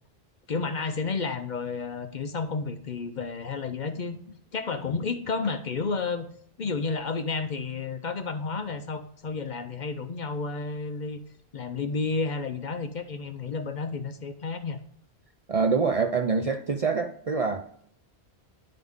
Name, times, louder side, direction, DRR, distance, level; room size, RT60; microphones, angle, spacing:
voice 1, 0.5-4.2 4.5-6.3 6.6-11.2 11.5-14.8, left 4 dB, 50° left, 8 dB, 0.7 m, -31 dB
voice 2, 15.5-17.8, right 5 dB, 45° right, 6 dB, 0.5 m, -26 dB
11.0 x 3.9 x 3.5 m, 0.65 s
omnidirectional pair, 1.1 m